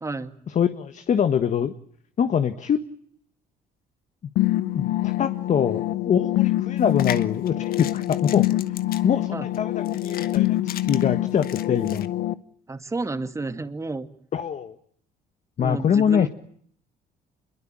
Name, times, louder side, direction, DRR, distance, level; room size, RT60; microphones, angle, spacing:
voice 1, 0.0-0.4 9.3-9.5 12.7-14.1 15.6-16.3, right 3 dB, 15° right, 9 dB, 2.3 m, -31 dB
voice 2, 0.5-1.7 2.2-2.9 4.7-8.5 9.0-12.1 14.3-14.7 15.6-16.3, left 8 dB, 45° left, 10 dB, 1.6 m, -24 dB
sound 1, 4.4-12.3, left 15 dB, 80° left, 1.1 m, -25 dB
sound 2, 6.8-12.1, left 10 dB, 60° left, 1.6 m, -38 dB
27.0 x 22.5 x 8.9 m, 0.64 s
cardioid pair, 110°, 17 cm